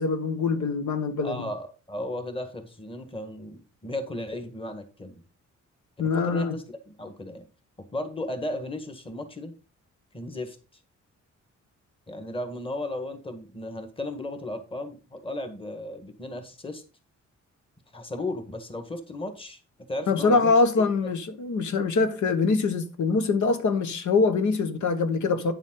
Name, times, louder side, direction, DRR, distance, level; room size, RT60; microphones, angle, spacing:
voice 1, 0.0-1.5 6.0-6.5 20.1-25.5, left 4 dB, 80° left, 1.5 m, -24 dB
voice 2, 1.2-5.2 6.1-7.5 7.9-9.5 10.1-10.6 12.1-16.8 17.9-19.6 19.9-21.1, left 1 dB, 20° left, 1.6 m, -35 dB
9.6 x 7.3 x 3.8 m
wide cardioid pair, 145°, 29 cm